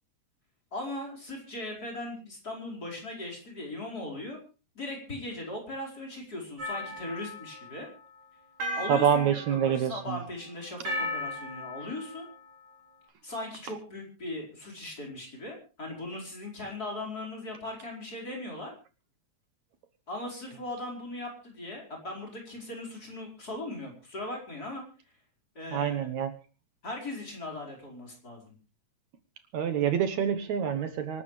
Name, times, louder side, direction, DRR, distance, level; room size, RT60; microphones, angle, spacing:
voice 1, 0.7-4.4 4.8-7.9 8.8-9.4 9.6-12.3 13.2-18.7 20.1-24.9 25.6-26.1 26.8-28.5, left 2 dB, 30° left, 0 dB, 5.4 m, -39 dB
sound 1, 6.6-7.9 8.6-10.1 10.8-12.3, left 1 dB, 50° right, 4.7 m, -36 dB
voice 2, 8.9-10.2 25.7-26.3 29.5-31.2, right 8 dB, 70° right, 9 dB, 2.4 m, -26 dB
25.5 x 13.0 x 3.3 m, 0.33 s
omnidirectional pair, 3.5 m